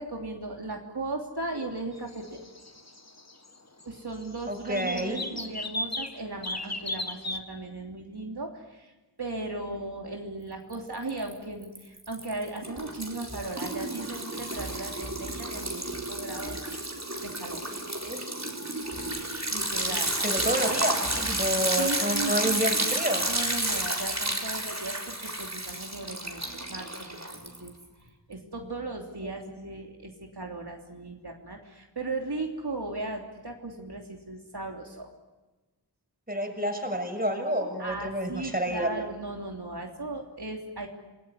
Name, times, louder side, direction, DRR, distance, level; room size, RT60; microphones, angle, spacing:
voice 1, 0.0-2.4 3.8-8.9 9.2-16.7 17.2-17.8 19.5-20.2 21.8-22.6 23.3-27.7 28.3-35.1 37.8-40.9, right 2 dB, 75° right, 1 dB, 3.2 m, -37 dB
sound 1, 2.0-3.6 3.8-3.9 4.2-6.2 6.4-7.4, left 1 dB, 40° left, 2.1 m, -35 dB
voice 2, 4.5-5.2 18.0-18.3 19.9-23.3 29.2-29.3 36.3-38.9, equal, 20° right, 4 dB, 6.7 m, -29 dB
Liquid, 10.7-11.3 11.6-27.8, right 1 dB, 40° right, 4.1 m, -31 dB
28.5 x 20.5 x 9.9 m, 1.2 s
wide cardioid pair, 45°, 40 cm